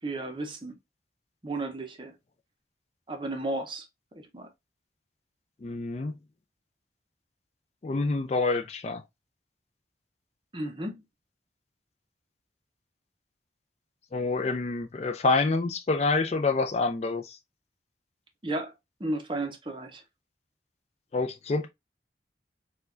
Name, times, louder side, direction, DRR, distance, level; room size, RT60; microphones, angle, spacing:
voice 1, 0.0-0.8 1.4-2.2 3.1-3.9 4.1-4.5 10.5-11.0 18.4-18.7 19.0-20.0, right 2 dB, 30° right, 0.6 m, -33 dB
voice 2, 5.6-6.1 7.8-9.0 14.1-17.4 21.1-21.7, left 3 dB, 35° left, 0.3 m, -27 dB
4.5 x 2.2 x 2.4 m
head